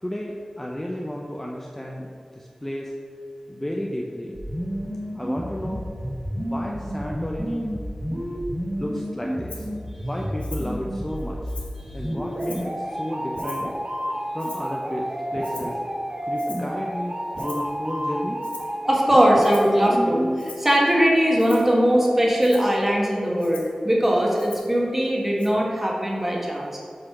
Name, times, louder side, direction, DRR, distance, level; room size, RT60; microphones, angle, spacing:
voice 1, 0.0-2.1 2.3-2.9 3.5-4.4 5.1-5.9 6.4-7.7 8.8-9.7 10.0-11.4 11.9-13.7 14.3-15.8 16.3-18.4 22.1-22.2, equal, 15° left, -1 dB, 0.7 m, -32 dB
sound 1, 4.3-20.4, equal, 55° right, 1.7 m, -30 dB
Rattle (instrument), 9.5-9.7 10.4-10.8 11.2-11.8 12.4-12.8 13.4-13.8 14.4-14.8 15.4-15.8 16.4-16.7 17.4-17.7 18.4-18.8 19.4-19.8 20.4-20.7 21.4-21.7 22.4-22.7 23.4-23.8 24.4-24.8 25.4-25.5, left 3 dB, 75° left, 1.1 m, -43 dB
voice 2, 18.9-26.8, equal, 15° right, -2 dB, 1.7 m, -20 dB
7.8 x 4.1 x 5.9 m, 2.4 s
wide cardioid pair, 75°, 2 cm